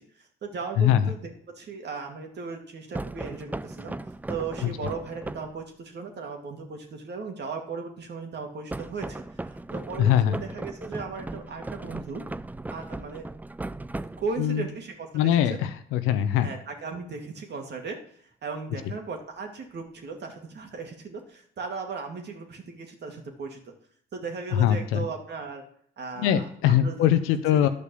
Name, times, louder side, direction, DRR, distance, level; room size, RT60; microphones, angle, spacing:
voice 1, 0.0-4.0 4.3-12.2 12.7-13.3 14.2-15.6 16.4-23.6 24.1-25.6 26.0-27.7, right 4 dB, 55° right, 3 dB, 2.3 m, -37 dB
voice 2, 0.8-1.1 10.0-10.4 14.4-14.6 15.1-16.5 24.5-25.0 26.2-27.7, left 10 dB, 80° left, 11 dB, 0.9 m, -22 dB
sound 1, 2.9-5.6 8.7-14.6, right 2 dB, 10° right, 0.4 m, -37 dB
11.0 x 5.2 x 6.9 m, 0.66 s
supercardioid pair, 60°, 21 cm